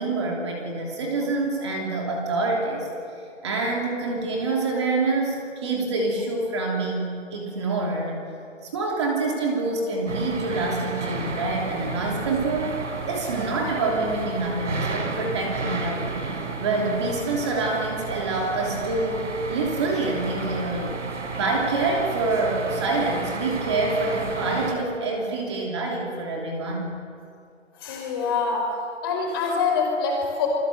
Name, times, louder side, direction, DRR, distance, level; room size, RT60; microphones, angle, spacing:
voice 1, 0.0-2.9 3.4-8.2 8.6-12.8 13.1-16.1 16.6-21.0 21.3-26.9, right 3 dB, 20° right, 0 dB, 3.0 m, -26 dB
sound 1, 10.1-24.7, right 3 dB, 65° right, 4.2 m, -32 dB
voice 2, 27.8-28.6 29.0-30.5, left 5 dB, 20° left, 0 dB, 4.7 m, -25 dB
28.5 x 22.0 x 7.8 m, 2.4 s
hypercardioid pair, 170°, 38 cm